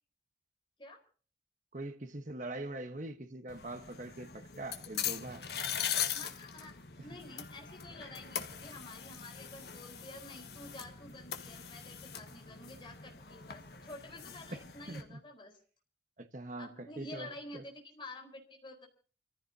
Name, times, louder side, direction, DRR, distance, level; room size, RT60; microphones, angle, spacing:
voice 1, 1.7-5.5 14.5-14.6 14.9-15.2 16.2-17.7, right 2 dB, 45° right, 1.2 m, -43 dB
sound 1, 3.5-15.0, left 8 dB, 65° left, 1.7 m, -41 dB
voice 2, 6.1-15.5 16.6-18.9, left 1 dB, 25° left, 4.4 m, -50 dB
29.0 x 15.0 x 2.8 m
head